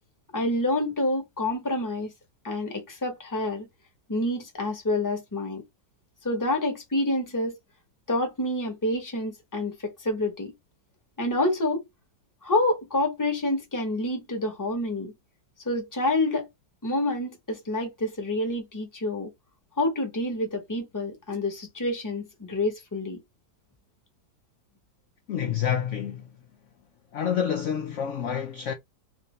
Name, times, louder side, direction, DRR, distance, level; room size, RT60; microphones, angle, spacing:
voice 1, 0.3-2.1 2.4-3.7 4.1-5.6 6.2-7.6 8.1-10.5 11.2-11.8 12.4-15.1 15.6-16.5 16.8-19.3 19.8-23.2, left 1 dB, 15° left, 0.9 m, -28 dB
voice 2, 25.3-26.3 27.1-28.7, left 8 dB, 70° left, 0.7 m, -28 dB
3.2 x 2.7 x 3.2 m
omnidirectional pair, 1.8 m